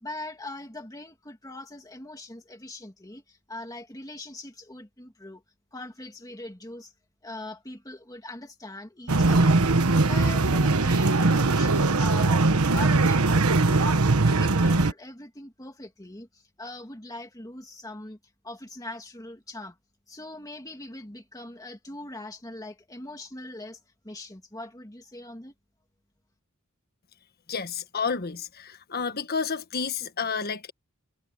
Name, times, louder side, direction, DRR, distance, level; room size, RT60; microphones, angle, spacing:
voice 1, 0.0-5.4 5.7-6.9 7.2-9.8 10.0-13.9 14.2-18.2 18.4-19.8 20.1-25.5, left 2 dB, 15° left, 2.2 m, -41 dB
sound 1, 9.1-14.9, right 3 dB, 80° right, 1.3 m, -21 dB
voice 2, 27.5-30.7, left 5 dB, 45° left, 1.4 m, -30 dB
head